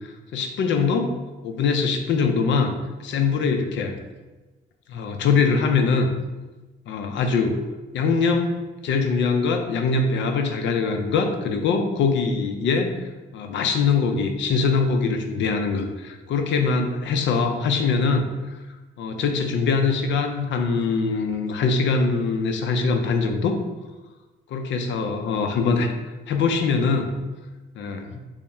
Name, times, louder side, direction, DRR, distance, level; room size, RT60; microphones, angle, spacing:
voice 1, 0.3-1.1 1.4-2.8 3.0-3.9 4.9-6.1 6.9-7.6 7.9-8.5 8.8-12.9 13.3-18.3 19.0-23.6 24.5-25.9 26.3-27.1 27.8-28.2, left 4 dB, 70° left, 5 dB, 0.5 m, -22 dB
3.4 x 2.1 x 4.2 m, 1.2 s
cardioid pair, 90°, 20 cm